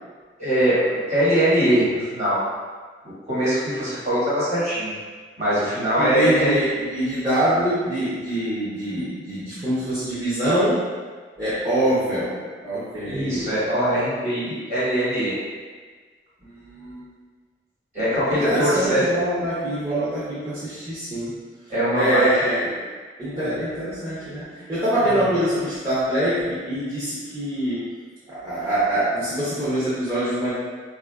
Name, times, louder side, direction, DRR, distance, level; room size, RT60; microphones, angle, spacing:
voice 1, 0.4-2.4 3.0-4.9 5.4-6.6 13.0-15.4 17.9-19.0 21.7-22.4 23.3-23.6, equal, 40° right, -10 dB, 1.3 m, -22 dB
voice 2, 6.0-10.9 11.4-13.5 16.4-17.1 18.3-21.4 21.9-22.8 23.2-27.9 28.3-30.5, right 1 dB, 20° right, -13 dB, 0.6 m, -24 dB
3.8 x 2.4 x 2.2 m, 1.5 s
head